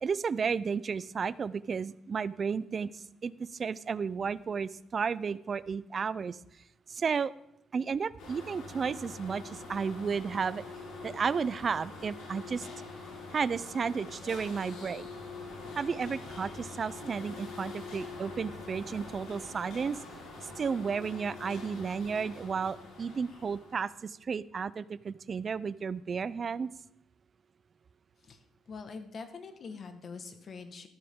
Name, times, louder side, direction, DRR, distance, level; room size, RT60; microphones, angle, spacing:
voice 1, 0.0-6.4 6.9-7.3 7.7-10.6 11.0-12.7 13.3-15.1 15.8-20.0 20.4-26.7, right 6 dB, 45° right, 18 dB, 0.5 m, -33 dB
sound 1, 8.2-24.0, left 3 dB, 85° left, 5.9 m, -45 dB
voice 2, 28.2-30.9, left 4 dB, 50° left, 7 dB, 1.5 m, -44 dB
13.5 x 13.0 x 3.7 m, 0.82 s
cardioid pair, 90°, 0 cm